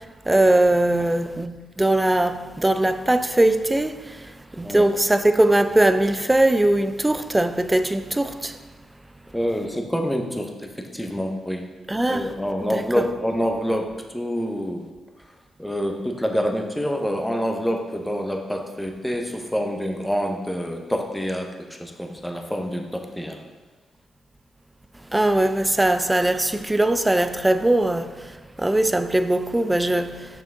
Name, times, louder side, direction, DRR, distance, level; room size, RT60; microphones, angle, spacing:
voice 1, 0.3-3.9 4.6-8.6 11.9-12.3 12.7-12.8 25.1-28.1 28.6-30.3, right 1 dB, 15° right, 0.5 m, -20 dB
voice 2, 9.3-11.7 12.1-14.9 15.6-23.4, equal, 5° left, 1.0 m, -27 dB
6.9 x 6.0 x 3.7 m
hypercardioid pair, 40°, 0 cm